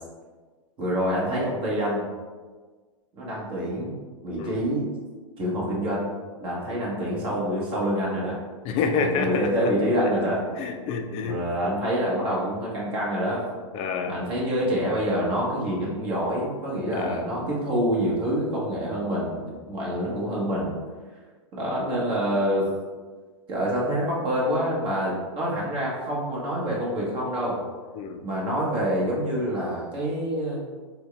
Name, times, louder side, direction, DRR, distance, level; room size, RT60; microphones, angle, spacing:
voice 1, 0.8-2.0 3.2-4.0 4.2-4.9 5.4-8.4 9.0-10.4 11.2-13.4 14.0-20.8 21.5-22.7 23.5-27.6 28.2-30.6, equal, 30° right, -4 dB, 1.3 m, -26 dB
voice 2, 8.6-9.7 10.4-11.8 13.7-14.2 16.9-17.3 28.0-28.2, left 5 dB, 35° left, 5 dB, 0.4 m, -29 dB
4.3 x 2.3 x 3.3 m, 1.4 s
hypercardioid pair, 125°, 17 cm